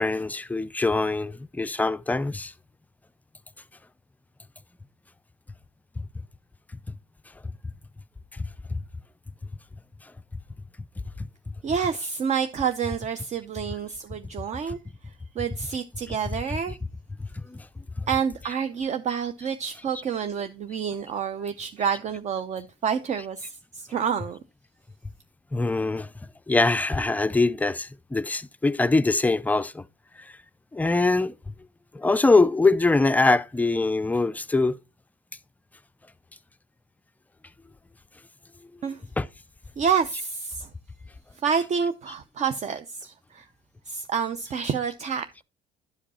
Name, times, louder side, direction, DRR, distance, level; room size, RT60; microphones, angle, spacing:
voice 1, 0.0-2.5 6.0-6.1 6.9-7.0 8.3-8.8 11.2-11.3 17.2-17.7 18.0-18.1 25.5-26.1 26.5-29.8 30.2-30.3 30.7-31.5 31.9-34.8 39.2-39.3, left 3 dB, 10° left, 0.4 m, -23 dB
voice 2, 11.6-16.8 18.1-24.4 38.8-39.0 39.8-40.7 41.3-43.5 43.9-45.4, right 7 dB, 45° right, 0.7 m, -28 dB
11.0 x 5.0 x 4.2 m
cardioid pair, 110°, 17 cm